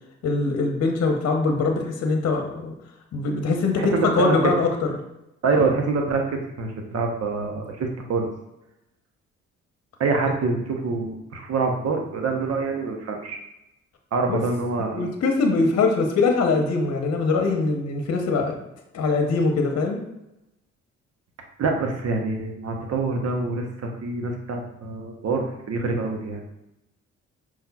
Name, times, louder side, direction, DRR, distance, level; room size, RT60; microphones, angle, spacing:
voice 1, 0.2-2.7 3.1-4.7 14.3-14.4 14.9-18.6 18.9-20.0, left 3 dB, 55° left, 3 dB, 0.9 m, -22 dB
voice 2, 3.8-4.4 5.4-8.3 10.0-13.4 14.1-15.1 21.6-26.4, right 4 dB, 55° right, 3 dB, 0.9 m, -25 dB
5.5 x 3.2 x 2.4 m, 0.88 s
supercardioid pair, 60°, 30 cm